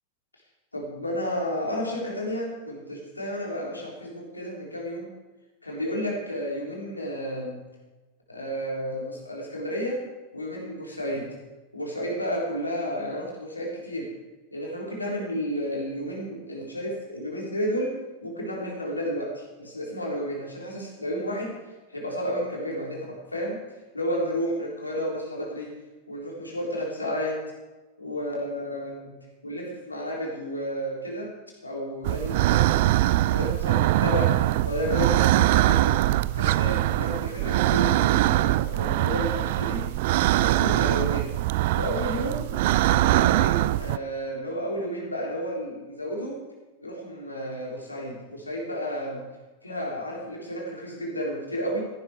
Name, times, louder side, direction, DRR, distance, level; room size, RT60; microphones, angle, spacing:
voice 1, 0.7-5.1 5.6-7.6 8.3-10.0 10.3-11.3 11.7-14.1 14.5-18.0 18.2-21.6 21.9-23.6 23.9-25.7 26.1-27.4 28.0-29.1 29.4-31.3 31.6-32.8 33.3-34.3 34.6-36.0 36.4-39.9 40.4-41.3 41.7-42.5 42.9-46.4 46.8-49.2 49.6-51.8, equal, 80° left, -2 dB, 3.7 m, -31 dB
sound 1, 32.0-44.0, right 16 dB, 50° right, 0.4 m, -22 dB
15.0 x 11.5 x 4.8 m, 1.2 s
figure-of-eight pair, 90°, 0 cm